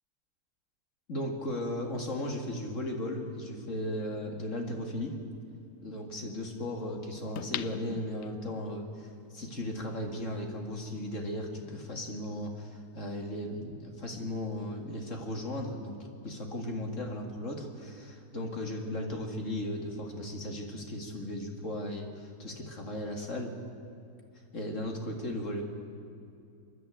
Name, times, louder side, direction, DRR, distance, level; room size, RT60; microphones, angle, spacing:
voice 1, 1.1-5.1 5.8-16.0 16.2-23.5 24.5-25.6, left 1 dB, 45° left, 2 dB, 2.4 m, -36 dB
sound 1, 3.7-3.8 7.4-8.7 9.2-9.3, left 11 dB, 65° left, 0.9 m, -39 dB
27.0 x 11.0 x 9.0 m, 2.6 s
omnidirectional pair, 1.8 m